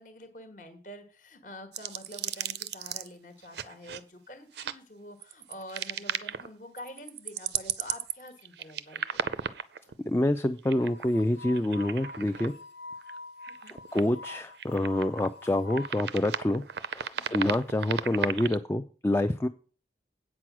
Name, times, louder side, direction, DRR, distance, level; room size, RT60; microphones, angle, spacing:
voice 1, 0.0-9.4 13.5-13.8 17.1-17.4, left 1 dB, 45° left, 7 dB, 1.3 m, -47 dB
sound 1, 1.7-3.1 3.5-4.0 4.6-4.7 5.2-6.5 6.8-9.9 10.6-11.2 11.5-12.5 12.9-13.2 13.4-14.3 14.6-15.3 15.7-18.6, right 8 dB, 70° right, 0.5 m, -35 dB
voice 2, 10.1-12.5 13.9-16.6 16.9-19.5, left 1 dB, 15° left, 8 dB, 0.3 m, -27 dB
sound 2, 10.7-16.0, left 3 dB, 70° left, 1.2 m, -46 dB
8.4 x 6.2 x 6.0 m, 0.41 s
head